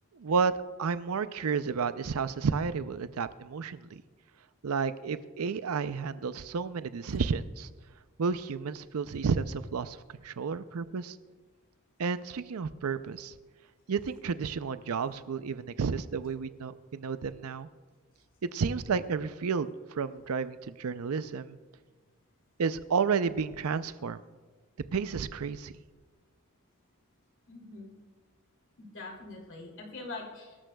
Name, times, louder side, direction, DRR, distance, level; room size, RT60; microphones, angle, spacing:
voice 1, 0.1-0.5 0.8-4.0 4.6-7.7 8.2-10.0 10.2-11.2 12.0-13.3 13.9-17.7 18.4-21.6 22.6-24.2 24.9-25.7, right 5 dB, 80° right, 13 dB, 0.5 m, -31 dB
voice 2, 27.5-27.9 28.8-30.6, left 3 dB, 60° left, 0 dB, 2.7 m, -43 dB
22.5 x 12.5 x 2.3 m, 1.4 s
head